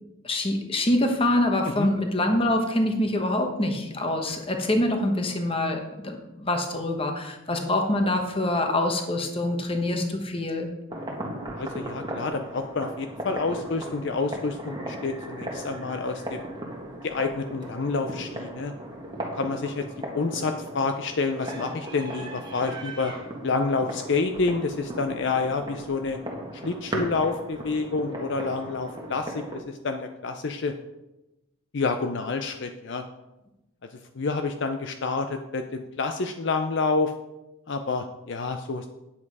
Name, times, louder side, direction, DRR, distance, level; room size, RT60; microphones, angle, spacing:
voice 1, 0.2-10.7, left 1 dB, 25° left, 3 dB, 1.2 m, -25 dB
sound 1, 10.9-29.6, right 1 dB, 20° right, 1.4 m, -37 dB
voice 2, 11.1-16.4 17.0-18.7 19.3-19.8 20.1-23.1 23.4-26.2 26.5-30.7 31.7-33.0 34.2-37.1 37.7-38.9, left 4 dB, 55° left, 6 dB, 0.5 m, -28 dB
9.6 x 7.4 x 4.8 m, 0.98 s
head